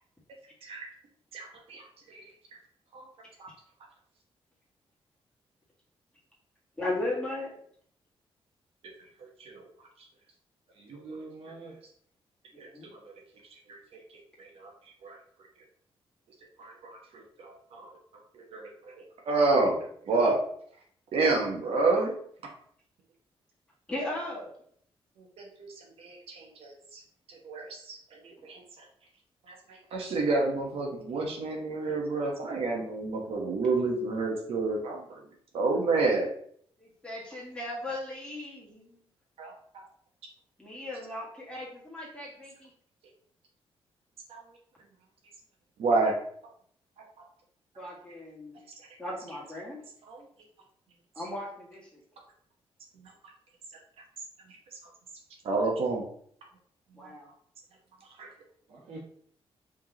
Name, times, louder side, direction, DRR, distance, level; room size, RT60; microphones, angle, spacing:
voice 1, 1.3-1.8 2.1-2.2 2.9-3.0 3.4-3.5 9.4-9.6 12.6-12.7 13.7-13.8 14.4-14.7 15.0-15.2 16.6-17.9 18.5-18.6 19.2-19.8 20.1-20.4 21.1-22.1 25.4-25.7 26.0-27.0 27.3-28.0 28.2-28.6 29.5-35.2 35.5-36.3 39.4-39.8 44.3-44.4 45.8-46.1 50.1-50.2 55.4-56.0 58.2-58.3, right 3 dB, 70° right, 0 dB, 1.0 m, -29 dB
voice 2, 6.8-7.5 12.7-12.9 23.9-24.5 28.4-28.5 36.8-39.0 40.6-42.7 47.8-48.6 49.0-49.8 51.1-52.0 56.9-57.3, left 1 dB, 10° left, -5 dB, 1.6 m, -37 dB
voice 3, 10.7-11.8 58.2-58.3 58.7-59.0, right 3 dB, 85° right, -2 dB, 1.5 m, -45 dB
4.9 x 3.6 x 2.8 m, 0.62 s
cardioid pair, 140°, 10 cm